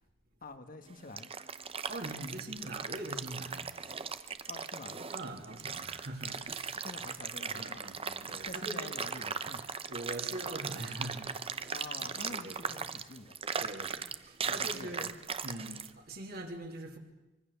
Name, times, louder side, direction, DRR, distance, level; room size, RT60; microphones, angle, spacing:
voice 1, 0.4-1.3 4.5-5.0 6.7-9.8 11.7-13.3 14.4-15.1, left 2 dB, 45° left, 1.6 m, -47 dB
sound 1, 0.9-15.9, right 6 dB, 30° right, 0.9 m, -38 dB
voice 2, 1.9-3.8 5.1-6.9 7.5-8.9 9.9-11.7 12.0-12.8 13.6-15.1 15.4-17.0, right 1 dB, 55° right, 3.1 m, -43 dB
24.5 x 23.0 x 7.1 m
head